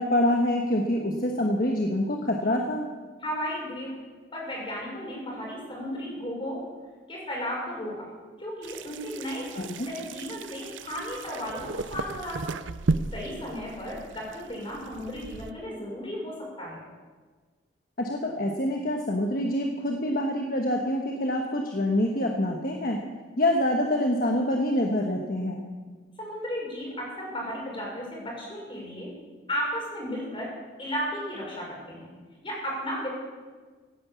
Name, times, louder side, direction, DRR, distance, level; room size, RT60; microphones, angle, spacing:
voice 1, 0.0-2.9 9.5-9.9 18.0-23.0 23.4-25.6, left 1 dB, 50° left, 2 dB, 1.3 m, -26 dB
voice 2, 3.2-3.9 4.3-6.6 7.1-8.1 8.4-9.5 9.9-12.6 13.1-16.8 26.2-29.1 29.5-30.5 30.8-32.1 32.4-33.1, equal, 25° left, -3 dB, 6.1 m, -34 dB
sound 1, 8.6-15.5, right 3 dB, 85° right, 0.6 m, -35 dB
16.5 x 9.8 x 8.4 m, 1.4 s
head